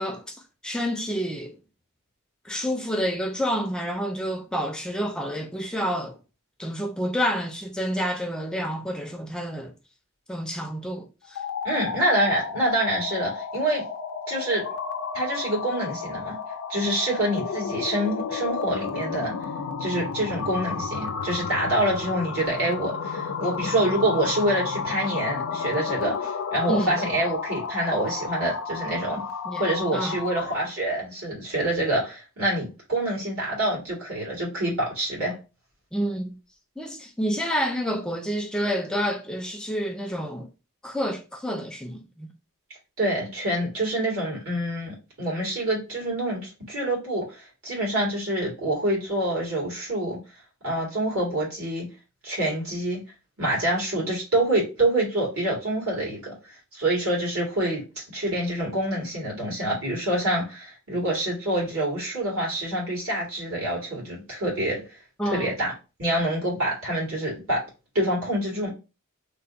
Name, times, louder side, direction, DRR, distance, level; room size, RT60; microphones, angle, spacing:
voice 1, 0.0-1.6 2.4-6.2 6.6-9.7 10.3-11.4 26.7-27.0 29.5-29.6 29.9-30.2 35.9-36.3 36.8-40.5 40.8-42.3 65.2-65.5, equal, 5° left, 0.4 m, -29 dB
sound 1, 11.2-30.7, left 5 dB, 80° left, 0.5 m, -32 dB
voice 2, 11.6-13.8 14.3-14.7 15.1-16.4 16.7-19.3 19.8-29.2 29.6-35.4 43.0-50.2 50.6-51.9 52.2-53.0 53.4-56.3 56.7-64.8 65.3-65.7 66.0-67.6 67.9-68.7, right 1 dB, 75° right, 2.1 m, -26 dB
3.3 x 2.1 x 3.9 m
head